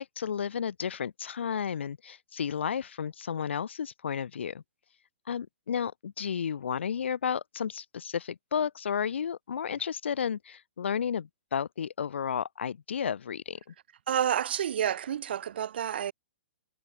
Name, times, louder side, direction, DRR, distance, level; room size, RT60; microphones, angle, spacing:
voice 1, 0.0-4.6 5.3-13.6, left 7 dB, 80° left, 1.8 m, -32 dB
voice 2, 14.1-16.1, right 9 dB, 60° right, 1.9 m, -29 dB
hypercardioid pair, 165°, 6 cm